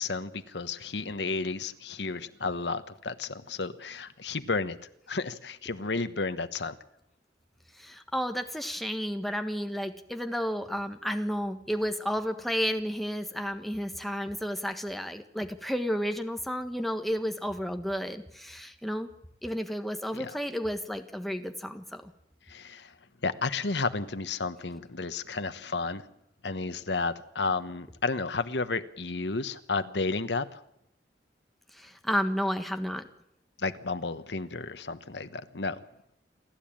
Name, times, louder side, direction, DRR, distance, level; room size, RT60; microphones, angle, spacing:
voice 1, 0.0-4.8 5.1-6.8 20.1-20.4 22.5-22.9 23.2-26.0 26.4-30.6 33.6-35.8, left 3 dB, 75° left, 11 dB, 1.2 m, -32 dB
voice 2, 7.8-19.1 19.4-22.0 31.8-33.0, equal, ahead, 6 dB, 1.4 m, -32 dB
28.0 x 12.5 x 8.9 m, 0.78 s
head